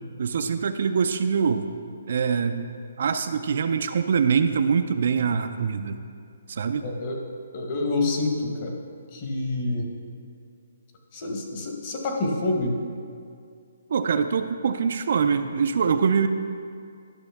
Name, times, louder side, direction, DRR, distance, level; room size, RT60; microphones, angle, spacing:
voice 1, 0.2-1.6 2.1-2.7 3.0-6.0 6.5-6.8 13.9-16.3, right 6 dB, 50° right, 8 dB, 0.3 m, -24 dB
voice 2, 6.8-7.2 7.5-8.8 9.1-9.9 11.1-12.7, left 2 dB, 30° left, 1 dB, 1.1 m, -27 dB
11.5 x 6.1 x 3.5 m, 2.3 s
hypercardioid pair, 170°, 0 cm